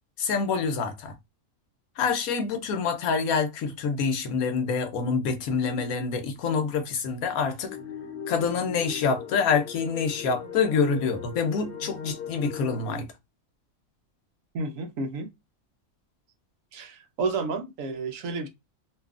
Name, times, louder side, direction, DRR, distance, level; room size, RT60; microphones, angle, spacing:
voice 1, 0.2-1.1 2.0-7.8 8.3-13.1, left 5 dB, 85° left, 1.1 m, -26 dB
sound 1, 7.6-13.0, left 6 dB, 60° left, 1.0 m, -39 dB
voice 2, 14.5-15.3 16.7-18.5, right 3 dB, 70° right, 1.0 m, -31 dB
2.9 x 2.3 x 2.3 m
omnidirectional pair, 1.5 m